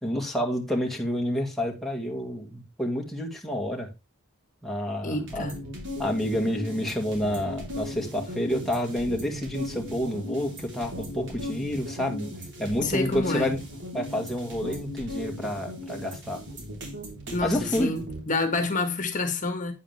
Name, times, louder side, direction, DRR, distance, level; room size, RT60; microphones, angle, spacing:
voice 1, 0.0-3.9 4.6-5.4 6.0-12.3 12.6-13.6 13.9-16.4 17.4-17.9, equal, ahead, 1.9 m, -29 dB
voice 2, 5.0-5.6 12.8-13.5 17.3-19.7, left 3 dB, 40° left, 1.6 m, -28 dB
sound 1, 5.3-18.2, equal, 60° right, 3.7 m, -37 dB
9.4 x 8.2 x 3.4 m
head